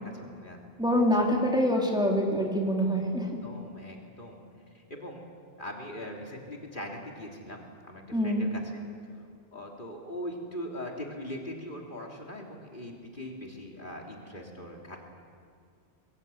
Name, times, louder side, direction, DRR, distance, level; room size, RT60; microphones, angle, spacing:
voice 1, 0.0-0.6 3.0-3.1 3.4-4.4 4.7-5.2 5.6-8.8 9.5-15.0, equal, 50° left, 0 dB, 3.0 m, -41 dB
voice 2, 0.8-3.3 8.1-8.4, equal, 5° right, -1 dB, 3.3 m, -25 dB
27.0 x 22.5 x 8.3 m, 2.2 s
omnidirectional pair, 1.1 m